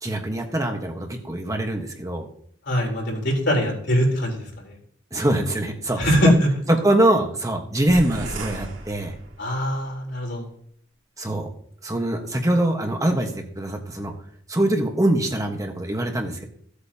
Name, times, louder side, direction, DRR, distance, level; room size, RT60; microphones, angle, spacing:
voice 1, 0.0-2.3 5.1-6.3 6.7-9.1 11.2-11.5 11.8-14.1 14.5-16.5, right 1 dB, 20° right, 3 dB, 1.3 m, -23 dB
voice 2, 2.7-4.4 6.0-6.5 9.4-10.5, equal, 65° left, 1 dB, 3.8 m, -22 dB
sound 1, 7.9-9.7, right 2 dB, 80° right, 3.0 m, -35 dB
16.0 x 8.3 x 2.9 m, 0.63 s
head